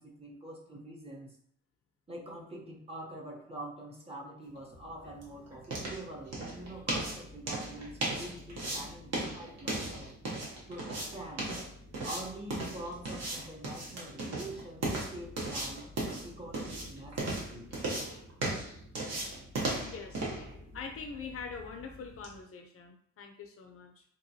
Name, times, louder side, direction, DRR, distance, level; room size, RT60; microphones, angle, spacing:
voice 1, 0.0-1.4 2.1-10.1 10.7-11.6 12.0-15.9 16.2-17.7, right 1 dB, 20° right, -2 dB, 0.8 m, -45 dB
sound 1, 4.6-22.4, right 2 dB, 55° right, 1.1 m, -37 dB
voice 2, 19.8-20.2 20.7-24.0, left 5 dB, 50° left, 4 dB, 0.6 m, -43 dB
2.9 x 2.5 x 2.7 m, 0.64 s
cardioid pair, 90°, 30 cm